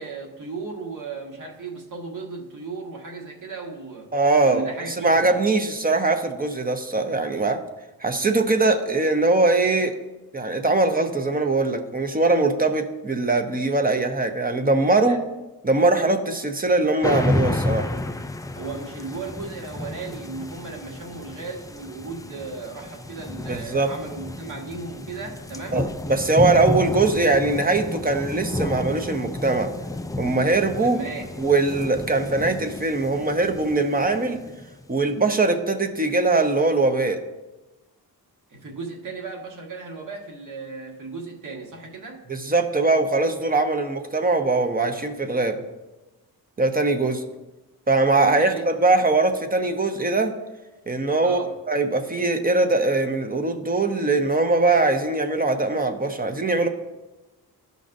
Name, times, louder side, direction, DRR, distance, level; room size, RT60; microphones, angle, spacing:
voice 1, 0.0-4.1 4.4-5.3 14.9-15.2 18.5-25.9 30.8-31.4 38.5-42.2 48.1-48.7 51.2-51.5, right 4 dB, 55° right, 0 dB, 1.6 m, -36 dB
voice 2, 4.1-4.6 5.0-7.6 8.0-9.9 10.3-15.2 15.6-17.9 23.5-23.9 25.7-29.7 30.2-31.0 31.4-34.4 34.9-37.2 42.3-45.6 46.6-47.2 47.9-50.3 50.9-51.4 51.7-56.7, right 3 dB, 25° right, 6 dB, 0.8 m, -21 dB
sound 1, 17.0-34.8, left 2 dB, 10° left, 0.3 m, -31 dB
13.5 x 5.3 x 2.6 m, 1.1 s
cardioid pair, 100°, 37 cm